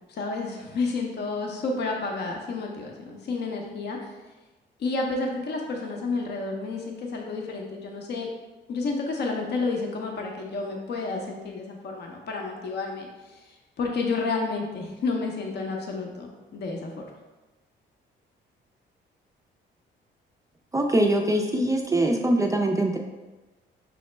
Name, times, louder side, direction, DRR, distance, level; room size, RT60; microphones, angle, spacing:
voice 1, 0.1-4.1 4.8-8.3 8.7-13.3 13.8-16.3 16.5-17.0, left 3 dB, 55° left, 1 dB, 0.6 m, -30 dB
voice 2, 20.7-23.0, right 1 dB, 15° right, 1 dB, 0.3 m, -23 dB
5.8 x 2.1 x 3.2 m, 1.1 s
cardioid pair, 90°, 20 cm